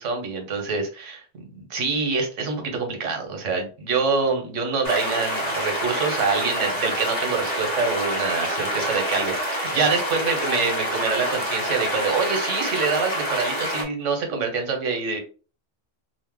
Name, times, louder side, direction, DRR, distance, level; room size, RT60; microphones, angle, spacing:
voice 1, 0.0-15.2, right 4 dB, 90° right, 4 dB, 1.2 m, -26 dB
sound 1, 4.8-13.8, equal, 40° left, 0.9 m, -27 dB
2.7 x 2.1 x 3.4 m, 0.37 s
omnidirectional pair, 1.2 m